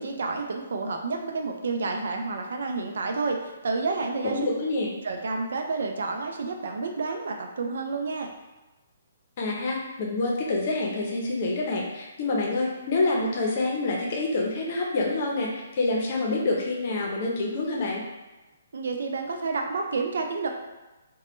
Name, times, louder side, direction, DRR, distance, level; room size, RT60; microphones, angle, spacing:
voice 1, 0.0-3.4 3.6-4.4 5.0-8.3 18.7-20.5, right 4 dB, 70° right, 3 dB, 0.4 m, -29 dB
voice 2, 4.2-4.9 9.4-18.0, left 2 dB, 45° left, -1 dB, 0.7 m, -27 dB
3.0 x 2.2 x 3.0 m, 1.1 s
hypercardioid pair, 150°, 0 cm